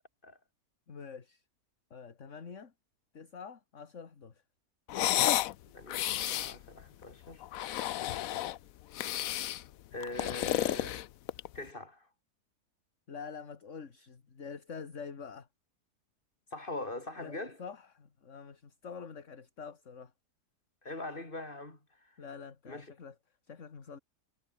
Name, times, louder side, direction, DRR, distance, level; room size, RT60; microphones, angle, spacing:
voice 1, 0.9-1.4 1.9-2.7 3.1-4.4 13.1-15.5 17.2-20.1 22.2-24.0, left 6 dB, 50° left, 2.2 m, -46 dB
sound 1, 4.9-5.5 5.9-6.6 7.4-8.6 8.9-9.6 10.0-11.6, left 13 dB, 65° left, 1.0 m, -31 dB
voice 2, 5.7-7.4 9.9-11.0 11.5-12.1 16.5-17.6 20.8-22.2 22.7-22.9, left 2 dB, 30° left, 4.5 m, -42 dB
omnidirectional pair, 1.7 m